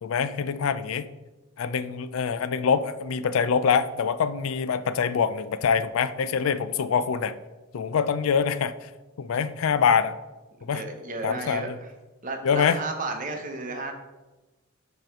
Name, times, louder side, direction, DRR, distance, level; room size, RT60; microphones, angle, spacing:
voice 1, 0.0-1.1 1.6-7.4 7.7-8.9 9.2-10.2 10.6-10.8 11.2-11.8 12.4-12.8, left 6 dB, 90° left, 14 dB, 0.4 m, -25 dB
voice 2, 10.6-11.9 12.2-13.9, right 3 dB, 40° right, 4 dB, 0.9 m, -33 dB
7.6 x 3.1 x 5.1 m, 1.1 s
head